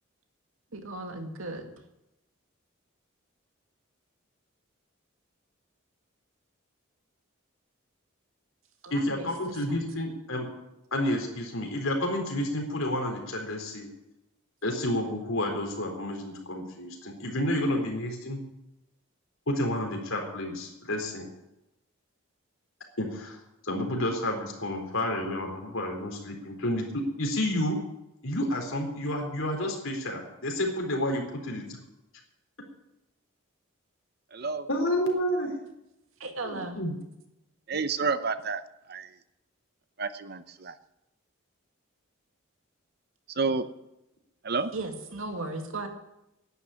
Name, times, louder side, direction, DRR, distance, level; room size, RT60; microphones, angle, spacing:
voice 1, 0.7-1.7 8.8-9.9 36.2-36.8 44.7-45.9, right 2 dB, 75° right, 2.2 m, -37 dB
voice 2, 8.9-10.5 10.9-13.9 14.6-18.4 19.5-21.3 23.0-23.4 23.6-27.8 28.2-31.6 34.7-35.5 36.4-36.9, left 1 dB, 70° left, 3.9 m, -30 dB
voice 3, 34.3-34.7 37.7-38.6 38.9-39.1 40.0-40.7 43.4-43.6 44.4-44.7, right 4 dB, 50° right, 0.8 m, -29 dB
11.0 x 9.9 x 9.7 m
head